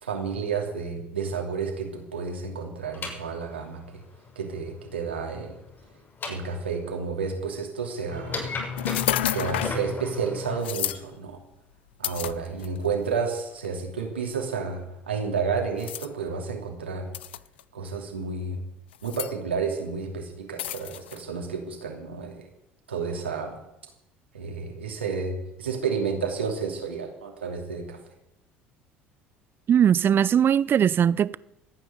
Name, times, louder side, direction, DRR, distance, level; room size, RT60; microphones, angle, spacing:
voice 1, 0.0-4.0 4.4-5.6 6.3-8.4 9.2-11.4 12.0-17.1 17.7-18.6 19.0-22.5 22.9-23.6 24.3-28.0, right 5 dB, 85° right, 2.8 m, -31 dB
sound 1, 2.8-6.9 8.1-10.6, left 4 dB, 40° left, 7.1 m, -35 dB
sound 2, 8.8-9.8 10.6-11.0 12.0-12.9 13.6-13.8 15.8-16.1 17.1-17.6 18.9-19.3 20.6-21.2, left 13 dB, 75° left, 0.5 m, -30 dB
voice 2, 29.7-31.4, right 9 dB, 40° right, 0.5 m, -20 dB
24.5 x 9.2 x 5.2 m
figure-of-eight pair, 60°, 6 cm